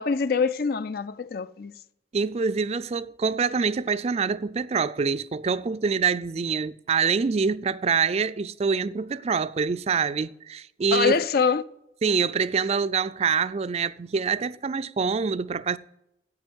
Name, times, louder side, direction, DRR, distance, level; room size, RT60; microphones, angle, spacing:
voice 1, 0.0-1.7 10.9-11.6, left 5 dB, 55° left, 0.5 m, -24 dB
voice 2, 2.1-11.2 12.0-15.8, right 5 dB, 35° right, 0.4 m, -25 dB
9.6 x 8.5 x 8.0 m
head